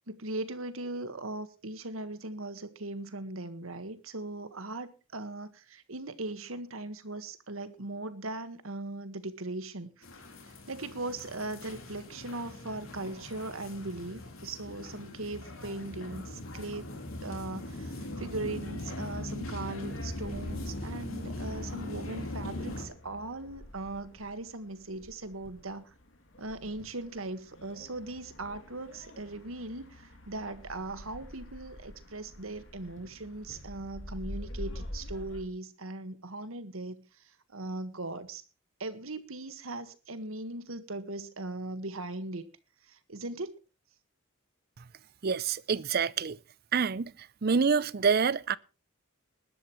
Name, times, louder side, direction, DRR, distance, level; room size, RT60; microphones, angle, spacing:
voice 1, 0.1-10.0 10.7-16.9 17.2-25.9 26.4-37.0 37.5-38.4 38.8-42.4 42.9-43.6, right 2 dB, 85° right, 1.6 m, -39 dB
sound 1, 10.0-22.9, left 1 dB, 85° left, 3.7 m, -40 dB
sound 2, 20.0-35.4, left 1 dB, 65° left, 2.7 m, -47 dB
voice 2, 45.2-46.4 46.7-47.1 47.4-48.6, right 5 dB, 50° right, 0.5 m, -26 dB
20.0 x 12.0 x 3.1 m
head